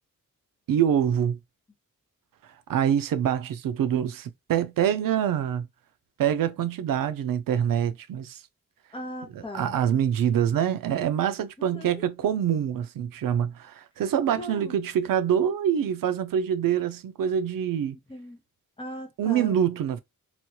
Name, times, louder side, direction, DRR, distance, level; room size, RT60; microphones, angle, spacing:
voice 1, 0.7-1.4 2.7-5.7 6.2-8.4 9.5-18.0 19.2-20.0, right 9 dB, 90° right, 0.5 m, -25 dB
voice 2, 8.9-9.8 11.6-12.1 14.3-14.8 18.1-18.4 18.8-19.6, left 1 dB, 15° left, 0.7 m, -39 dB
3.0 x 2.2 x 2.8 m
wide cardioid pair, 180°, 33 cm